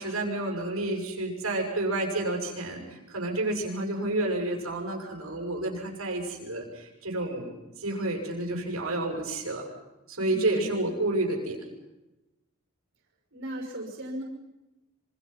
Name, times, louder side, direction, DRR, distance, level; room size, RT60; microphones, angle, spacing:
voice 1, 0.0-9.7 10.1-11.6, right 2 dB, 90° right, 0 dB, 7.2 m, -30 dB
voice 2, 10.3-10.7 13.3-14.2, equal, 65° right, 1 dB, 6.1 m, -36 dB
27.0 x 26.5 x 5.9 m, 0.99 s
head